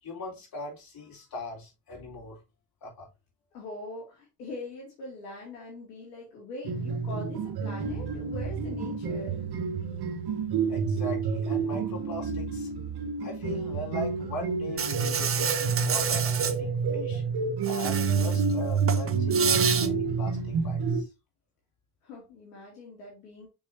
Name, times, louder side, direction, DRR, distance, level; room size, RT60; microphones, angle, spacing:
voice 1, 0.0-2.4 2.8-3.1 10.7-12.7 13.2-17.2 17.6-21.1, left 2 dB, 45° left, 3.6 m, -40 dB
voice 2, 3.5-9.5 22.0-23.5, left 2 dB, 80° left, 2.2 m, -42 dB
sound 1, 6.6-21.0, right 5 dB, 50° right, 1.1 m, -29 dB
Insect, 14.8-16.5 17.6-18.5 18.8-19.9, right 7 dB, 30° right, 0.8 m, -29 dB
6.5 x 6.1 x 2.7 m
figure-of-eight pair, 40°, 48 cm